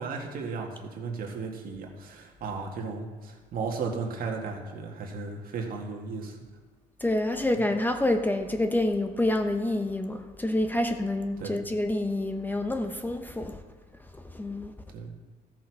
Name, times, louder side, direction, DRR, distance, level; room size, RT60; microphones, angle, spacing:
voice 1, 0.0-6.4 11.4-11.6 14.9-15.1, right 4 dB, 60° right, 1 dB, 1.8 m, -35 dB
voice 2, 7.0-13.6 14.2-14.7, left 1 dB, 10° left, 6 dB, 0.8 m, -27 dB
14.0 x 6.3 x 4.8 m, 1.4 s
cardioid pair, 110°, 17 cm